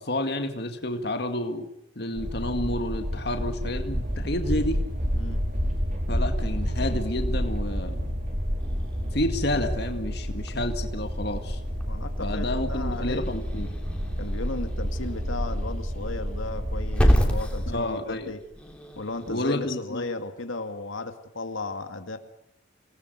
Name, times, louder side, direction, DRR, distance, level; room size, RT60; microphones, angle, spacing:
voice 1, 0.0-1.7 2.0-4.8 6.1-8.1 9.1-11.6 12.2-13.7 17.7-18.4 19.3-20.1, left 1 dB, 55° left, 6 dB, 2.1 m, -30 dB
sound 1, 2.1-17.8, equal, 40° right, 4.7 m, -29 dB
Growling / Hiss, 8.6-19.3, equal, 5° left, 3.3 m, -31 dB
voice 2, 11.9-13.3 14.2-18.4 19.0-22.2, left 3 dB, 85° left, 7 dB, 2.3 m, -35 dB
28.0 x 19.5 x 8.2 m, 0.74 s
head